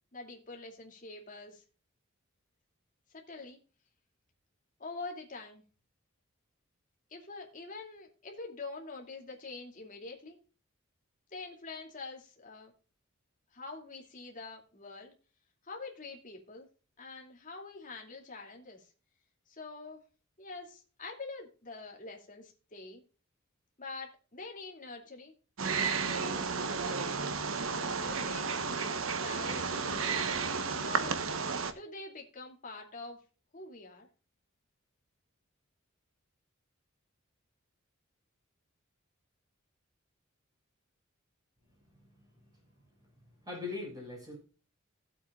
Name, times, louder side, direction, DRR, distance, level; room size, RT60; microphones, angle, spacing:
voice 1, 0.1-1.6 3.1-3.6 4.8-5.6 7.1-10.4 11.3-12.7 13.5-15.1 15.6-16.7 17.0-18.9 19.5-20.0 20.4-23.0 23.8-25.3 26.0-27.3 27.9-28.6 29.2-30.3 30.8-31.2 31.7-33.2 33.5-34.1, left 3 dB, 40° left, 1 dB, 2.6 m, -45 dB
Wild animals, 25.6-31.7, right 5 dB, 70° right, 1.0 m, -32 dB
voice 2, 41.7-42.7 43.0-44.4, left 3 dB, 20° right, -1 dB, 5.3 m, -44 dB
16.5 x 7.9 x 2.4 m, 0.36 s
head